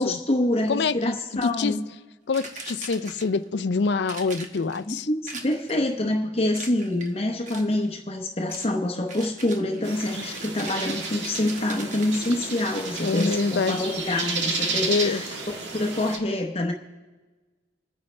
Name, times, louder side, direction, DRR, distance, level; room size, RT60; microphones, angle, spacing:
voice 1, 0.0-1.8 4.9-15.2 15.7-16.7, left 1 dB, 30° left, 2 dB, 0.8 m, -26 dB
voice 2, 0.7-1.2 1.4-1.8 2.3-5.1 13.0-13.8 14.9-15.2, left 4 dB, 65° left, 15 dB, 0.4 m, -25 dB
sound 1, 2.3-3.5 4.1-4.8 5.3-5.9 6.5-7.1 7.5-7.9 8.5-8.7 9.1-13.4, right 3 dB, 40° right, 1.2 m, -41 dB
sound 2, 9.8-16.2, right 3 dB, 75° right, 1.7 m, -32 dB
26.0 x 9.5 x 3.3 m, 1.2 s
head